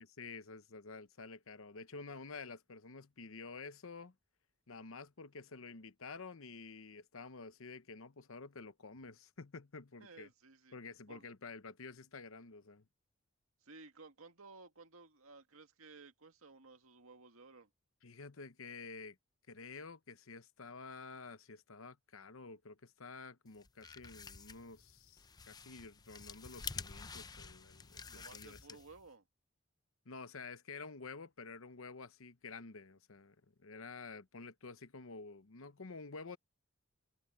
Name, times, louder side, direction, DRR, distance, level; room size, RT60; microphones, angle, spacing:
voice 1, 0.0-4.1 4.7-10.3 10.7-12.9 18.0-19.2 19.5-28.6 30.0-36.4, left 4 dB, 70° left, 0.9 m, -50 dB
voice 2, 10.0-10.8 11.1-11.3 13.6-17.7 28.0-29.2, right 3 dB, 80° right, 2.0 m, -57 dB
sound 1, 23.5-29.1, left 5 dB, 20° left, 0.5 m, -49 dB
head